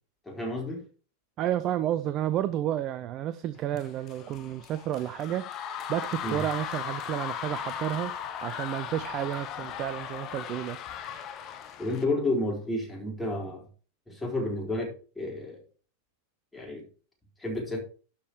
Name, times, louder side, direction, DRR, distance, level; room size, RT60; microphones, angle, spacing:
voice 1, 0.3-0.8 6.2-6.4 11.8-13.6 14.1-15.6 16.5-16.8 17.4-17.8, left 2 dB, 5° left, 4.0 m, -31 dB
voice 2, 1.4-5.5 5.9-8.1 8.4-10.8, right 12 dB, 35° right, 0.5 m, -31 dB
sound 1, 3.7-12.0, left 9 dB, 35° left, 1.2 m, -37 dB
12.0 x 5.2 x 4.5 m
figure-of-eight pair, 90°, 0 cm